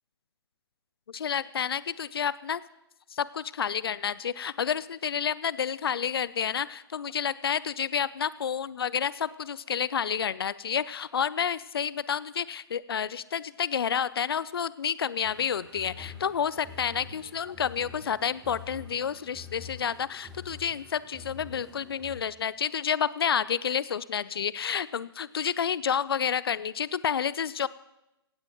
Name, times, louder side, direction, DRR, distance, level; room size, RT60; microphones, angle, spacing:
voice 1, 1.1-2.6 3.1-27.7, left 8 dB, 70° left, 19 dB, 0.5 m, -30 dB
sound 1, 15.2-22.2, left 4 dB, 5° right, 2.5 m, -47 dB
17.0 x 16.0 x 3.0 m, 0.92 s
figure-of-eight pair, 135°, 13 cm